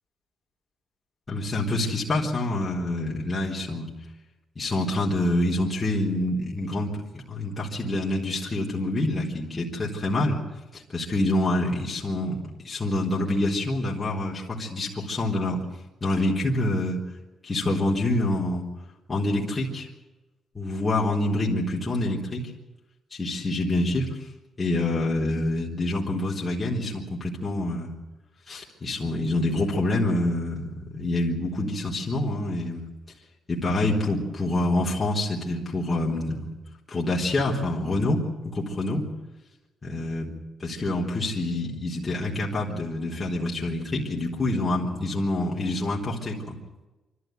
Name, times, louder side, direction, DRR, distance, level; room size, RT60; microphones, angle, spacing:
voice 1, 1.3-3.9 4.6-10.4 10.7-15.6 16.0-17.0 17.4-18.6 19.1-19.9 20.5-22.4 23.1-24.1 24.6-27.9 28.5-32.8 33.5-36.5 36.9-39.1 39.8-40.3 40.6-46.5, left 1 dB, 30° left, -4 dB, 3.9 m, -26 dB
25.5 x 13.0 x 9.4 m, 1.1 s
cardioid pair, 90°, 0 cm